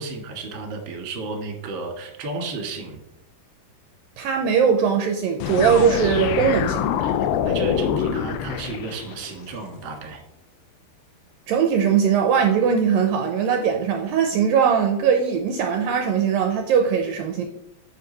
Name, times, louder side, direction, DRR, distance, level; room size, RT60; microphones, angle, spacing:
voice 1, 0.0-3.0 7.0-10.2, right 3 dB, 45° right, 1.8 m, -33 dB
voice 2, 4.2-6.9 11.5-17.4, right 7 dB, 80° right, 2.2 m, -20 dB
sound 1, 5.4-9.3, left 9 dB, 85° left, 2.1 m, -25 dB
9.4 x 7.2 x 4.1 m
omnidirectional pair, 4.7 m